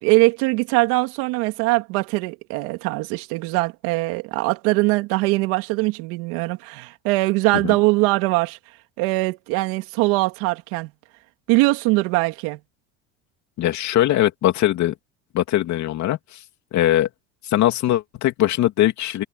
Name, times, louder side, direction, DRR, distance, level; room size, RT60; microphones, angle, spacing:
voice 1, 0.0-8.6 9.0-10.9 11.5-12.6, right 22 dB, 80° right, 2.9 m, -21 dB
voice 2, 13.6-14.9 15.3-16.4 16.7-17.1 17.4-19.2, left 13 dB, 55° left, 3.0 m, -21 dB
supercardioid pair, 115°, 33 cm